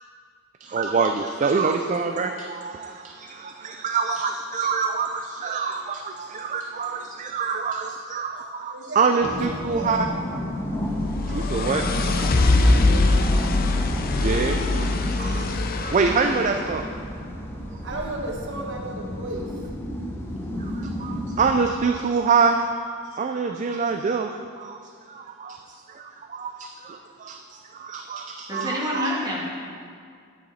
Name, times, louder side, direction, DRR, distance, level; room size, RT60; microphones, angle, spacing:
voice 1, 0.6-10.1 11.3-12.0 14.2-15.5 15.8-16.8 20.6-24.3 24.6-25.6 25.9-29.1, right 5 dB, 35° right, 5 dB, 0.3 m, -26 dB
voice 2, 8.7-10.2 12.0-13.3 16.0-16.8 17.8-19.7, right 2 dB, 60° right, 0 dB, 1.2 m, -36 dB
sound 1, 9.2-21.6, equal, 10° left, 1.0 m, -31 dB
sound 2, 10.6-16.7, left 2 dB, 45° left, 0.5 m, -23 dB
voice 3, 28.5-29.5, left 1 dB, 20° right, -5 dB, 1.9 m, -27 dB
10.0 x 8.9 x 4.2 m, 2.2 s
head